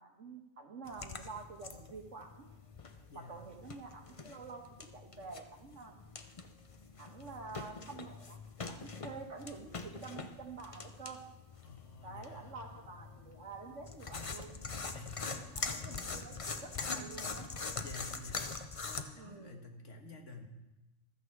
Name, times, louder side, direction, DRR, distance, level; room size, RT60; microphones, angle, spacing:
voice 1, 0.0-2.5 3.1-5.9 7.0-11.2 12.0-14.6 15.4-17.7 19.2-19.6, right 4 dB, 60° right, 3 dB, 1.9 m, -48 dB
sound 1, 0.9-19.0, left 4 dB, 30° left, 0.7 m, -44 dB
voice 2, 3.1-3.5 11.6-12.6 14.9-16.3 17.7-20.5, left 3 dB, 60° left, 3 dB, 2.0 m, -52 dB
15.0 x 13.5 x 4.7 m, 0.96 s
omnidirectional pair, 1.4 m